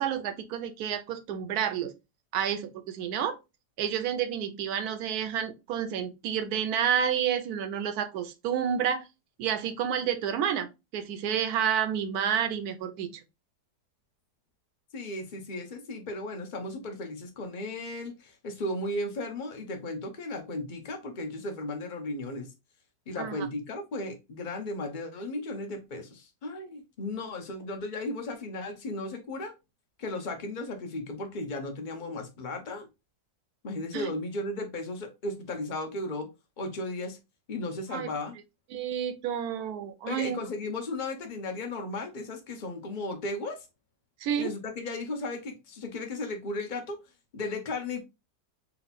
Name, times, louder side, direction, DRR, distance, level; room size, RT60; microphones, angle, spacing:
voice 1, 0.0-1.9 2.3-3.4 3.8-9.0 9.4-10.7 10.9-13.2 23.2-23.5 33.9-34.1 37.9-38.1 38.7-40.4 44.2-44.5, right 8 dB, 70° right, 1.2 m, -30 dB
voice 2, 14.9-22.5 23.1-29.5 30.0-32.9 33.6-36.3 36.6-37.2 37.5-38.3 40.1-43.7 44.4-47.0 47.3-48.0, left 2 dB, 35° left, 0.9 m, -35 dB
4.4 x 2.4 x 4.0 m
omnidirectional pair, 1.8 m